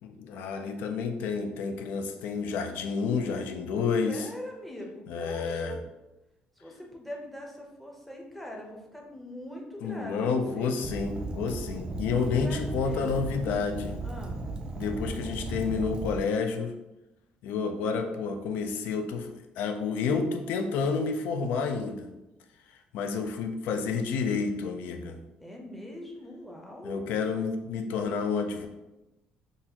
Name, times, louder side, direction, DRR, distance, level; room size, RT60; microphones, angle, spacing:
voice 1, 0.0-4.3 5.1-5.8 9.8-14.0 14.8-16.7 17.4-22.1 22.9-25.2 26.8-28.7, left 5 dB, 80° left, 6 dB, 0.4 m, -30 dB
voice 2, 4.1-5.8 6.6-10.8 12.0-13.3 14.0-14.4 25.4-27.1, left 1 dB, 5° left, -1 dB, 0.6 m, -42 dB
Fire, 10.8-16.2, right 3 dB, 30° right, 0.3 m, -36 dB
3.9 x 2.4 x 2.8 m, 0.99 s
cardioid pair, 130°, 3 cm